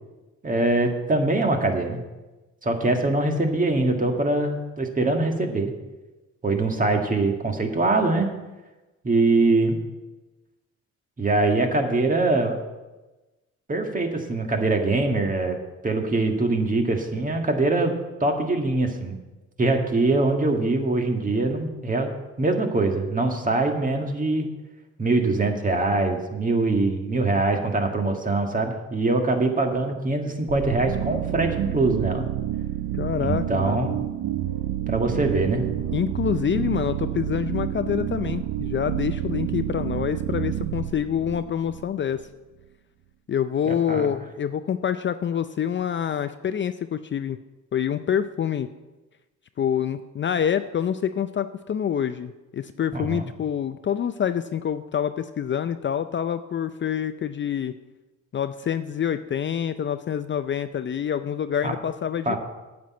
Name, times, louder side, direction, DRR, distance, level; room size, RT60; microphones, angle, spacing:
voice 1, 0.4-2.0 2.6-5.7 6.4-8.3 9.0-9.8 11.2-12.5 13.7-15.6 15.8-17.9 18.2-19.2 19.6-22.1 22.4-24.5 25.0-32.3 33.2-33.9 34.9-35.6 43.6-44.1 52.9-53.3 61.6-61.7 62.2-62.4, right 2 dB, 25° right, 3 dB, 1.7 m, -23 dB
sound 1, 30.5-42.2, right 12 dB, 80° right, 0.7 m, -29 dB
voice 2, 32.9-33.9 35.9-42.2 43.3-47.4 47.7-48.7 49.6-57.7 58.3-62.4, left 8 dB, 40° left, 10 dB, 0.5 m, -26 dB
9.2 x 6.1 x 8.5 m, 1.1 s
cardioid pair, 90°, 30 cm